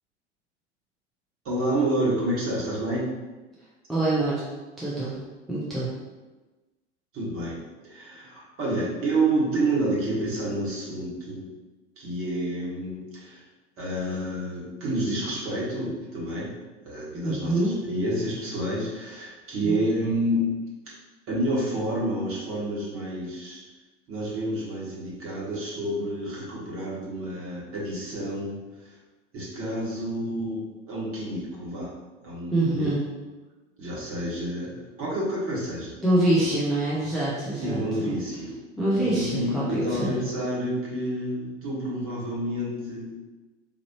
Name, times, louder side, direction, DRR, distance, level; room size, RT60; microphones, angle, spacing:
voice 1, 1.4-3.2 7.1-7.6 7.8-11.5 12.0-13.4 13.8-16.5 16.8-20.5 20.9-21.0 21.3-23.6 24.1-28.9 29.3-31.9 32.2-32.9 33.8-35.9 36.4-36.5 37.6-38.5 39.0-43.2, right 1 dB, 35° right, -6 dB, 1.5 m, -29 dB
voice 2, 3.9-4.4 4.8-5.2 5.5-5.9 17.2-17.7 19.7-19.8 32.5-33.0 36.0-38.1 38.8-39.6 39.9-40.2, right 1 dB, ahead, -9 dB, 0.6 m, -25 dB
4.2 x 2.6 x 2.9 m, 1.2 s
figure-of-eight pair, 85°, 37 cm